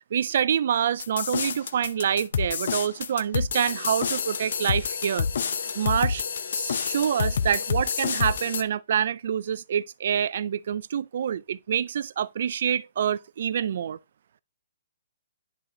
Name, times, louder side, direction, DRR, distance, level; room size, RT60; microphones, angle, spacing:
voice 1, 0.1-5.3 5.8-6.2 6.5-14.0, right 8 dB, 55° right, 0.3 m, -26 dB
sound 1, 1.0-8.6, left 6 dB, 65° left, 0.6 m, -28 dB
10.5 x 4.0 x 2.8 m
hypercardioid pair, 170°, 0 cm